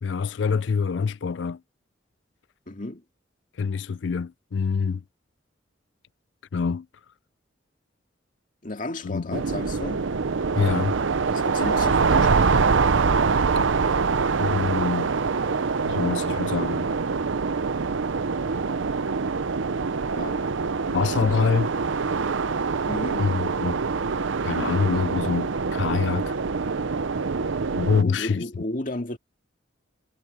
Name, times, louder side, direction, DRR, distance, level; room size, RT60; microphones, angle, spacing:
voice 1, 0.0-1.6 3.6-5.0 6.5-6.9 9.0-9.4 10.6-11.0 13.6-13.7 14.4-15.1 15.8-16.9 20.9-21.7 23.2-23.8 24.4-26.3 27.8-28.6, left 5 dB, 70° left, 0.4 m, -25 dB
voice 2, 2.7-3.0 8.6-10.1 11.3-12.9 20.1-20.4 21.1-21.4 22.9-23.3 27.9-29.2, left 2 dB, 45° left, 2.2 m, -34 dB
sound 1, 9.3-28.0, right 4 dB, 85° right, 0.7 m, -24 dB
head